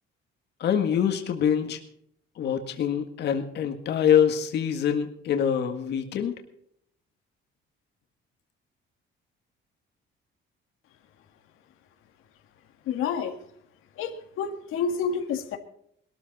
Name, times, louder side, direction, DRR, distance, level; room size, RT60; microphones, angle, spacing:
voice 1, 0.6-1.8 2.4-6.3, left 8 dB, 55° left, 5 dB, 1.8 m, -25 dB
voice 2, 12.9-13.4 14.0-15.6, left 6 dB, 90° left, 5 dB, 1.9 m, -29 dB
21.0 x 13.0 x 4.2 m, 0.70 s
cardioid pair, 170°, 21 cm